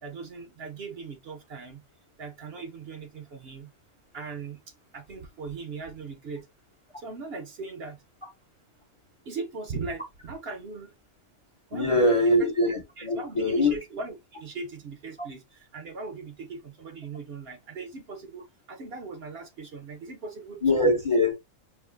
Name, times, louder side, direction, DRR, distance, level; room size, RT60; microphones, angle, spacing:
voice 1, 0.0-1.8 2.2-3.7 4.1-4.6 4.9-6.5 7.0-8.0 9.3-10.9 11.7-12.3 13.0-20.9, right 4 dB, 60° right, 0.8 m, -39 dB
voice 2, 11.7-13.8 20.6-21.3, left 1 dB, 35° left, 0.5 m, -23 dB
5.7 x 2.5 x 2.4 m
omnidirectional pair, 1.3 m